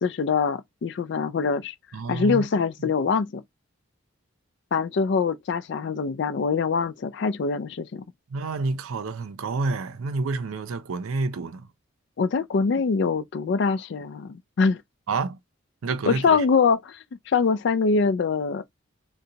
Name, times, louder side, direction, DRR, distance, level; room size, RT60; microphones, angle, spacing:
voice 1, 0.0-1.7 2.1-3.4 4.7-8.0 12.2-14.8 16.1-17.0 17.3-18.6, left 5 dB, 55° left, 0.3 m, -24 dB
voice 2, 1.9-2.9 8.3-11.7 15.1-15.4 15.8-16.4, right 3 dB, 80° right, 0.5 m, -29 dB
2.7 x 2.2 x 3.8 m
head